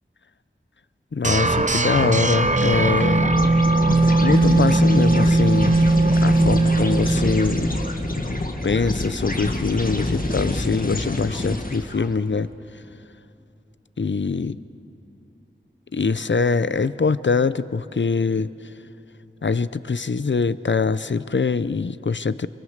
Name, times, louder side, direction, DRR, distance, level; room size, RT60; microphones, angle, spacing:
voice 1, 1.1-3.3 4.2-5.9 6.2-7.7 8.6-12.5 14.0-14.5 15.9-18.5 19.4-22.5, left 4 dB, 60° left, 15 dB, 0.6 m, -23 dB
sound 1, 1.2-8.2, right 2 dB, 35° right, 0.8 m, -19 dB
sound 2, 2.6-12.1, left 1 dB, 45° left, 1.6 m, -27 dB
24.0 x 23.0 x 6.5 m, 3.0 s
wide cardioid pair, 45°, 21 cm